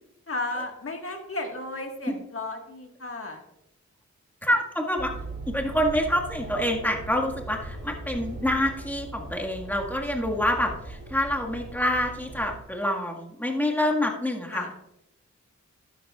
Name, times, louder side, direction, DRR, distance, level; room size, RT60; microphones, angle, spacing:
voice 1, 0.3-3.4 14.5-14.7, left 2 dB, 50° left, 3 dB, 1.7 m, -34 dB
voice 2, 4.4-5.1 5.5-14.7, left 1 dB, 5° left, 0 dB, 1.8 m, -27 dB
sound 1, 5.0-12.6, right 2 dB, 35° right, 2.5 m, -39 dB
12.0 x 10.0 x 2.4 m, 0.83 s
wide cardioid pair, 65°, 29 cm